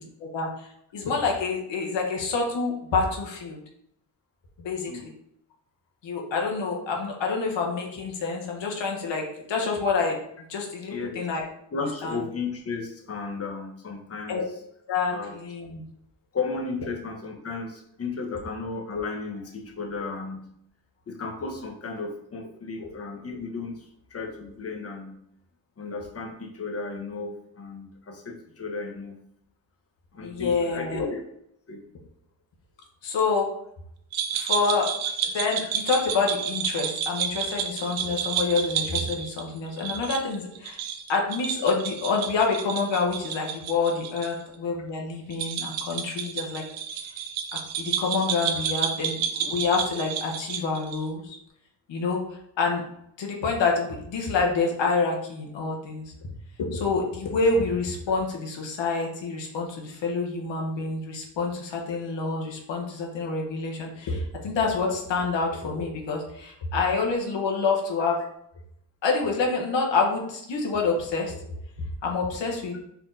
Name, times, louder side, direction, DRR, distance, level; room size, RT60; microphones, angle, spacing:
voice 1, 0.2-3.6 4.6-5.1 6.0-10.2 10.5-11.4 12.0-12.2 14.3-14.4 14.9-15.8 22.8-22.9 30.2-31.0 33.0-33.5 34.3-34.9 35.2-40.8 41.1-46.6 47.5-51.4 51.9-52.8 53.2-56.1 56.7-68.2 69.0-71.4 72.0-72.7, left 4 dB, 65° left, 0 dB, 1.3 m, -27 dB
voice 2, 10.9-11.3 11.7-14.4 15.1-15.3 16.3-20.4 21.1-25.2 25.8-29.2 30.1-31.2 31.7-31.8 44.2-44.4, left 4 dB, 30° left, 1 dB, 1.1 m, -34 dB
sound 1, 34.1-44.3 44.5-44.6 45.3-51.1, right 8 dB, 75° right, 0.7 m, -30 dB
4.6 x 2.8 x 3.9 m, 0.73 s
cardioid pair, 70°, 47 cm